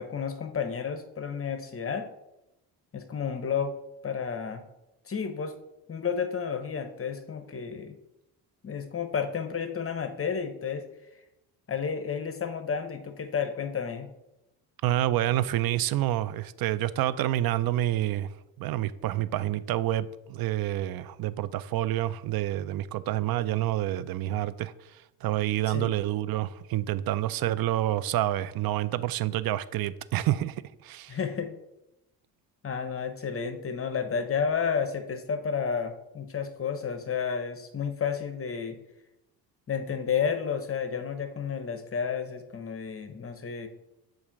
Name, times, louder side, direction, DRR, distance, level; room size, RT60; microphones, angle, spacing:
voice 1, 0.0-2.1 2.9-3.7 4.0-4.6 5.0-5.5 5.9-8.0 8.6-10.8 11.7-14.1 25.7-25.9 31.1-31.5 32.6-38.8 39.7-43.7, left 6 dB, 30° left, 8 dB, 0.8 m, -31 dB
voice 2, 14.8-18.3 18.6-31.2, right 14 dB, 50° right, 16 dB, 0.4 m, -28 dB
7.0 x 2.6 x 5.1 m, 0.90 s
supercardioid pair, 60°, 47 cm